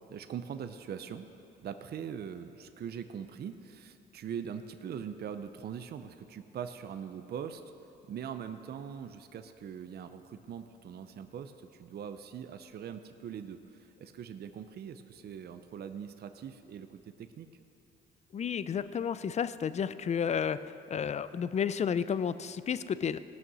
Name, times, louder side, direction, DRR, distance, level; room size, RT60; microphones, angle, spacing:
voice 1, 0.1-1.3 1.6-7.6 8.1-17.5, right 8 dB, 55° right, 9 dB, 0.6 m, -42 dB
voice 2, 18.3-20.6 20.9-23.2, left 7 dB, 35° left, 15 dB, 0.4 m, -31 dB
16.5 x 6.3 x 6.1 m, 2.8 s
cardioid pair, 90°, 20 cm